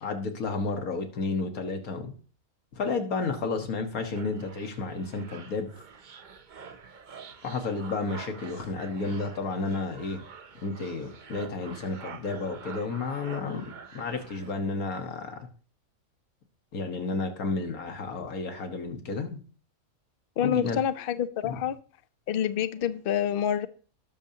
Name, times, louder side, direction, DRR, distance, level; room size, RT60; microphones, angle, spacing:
voice 1, 0.0-2.1 2.7-5.7 7.4-10.2 10.6-15.5 16.7-19.4 20.4-20.8 21.4-21.6, left 3 dB, 80° left, 1.8 m, -32 dB
sound 1, 4.1-14.5, right 6 dB, 45° right, 0.7 m, -46 dB
voice 2, 20.4-21.8 22.3-23.7, left 9 dB, 55° left, 0.6 m, -27 dB
18.5 x 6.8 x 2.8 m
omnidirectional pair, 1.5 m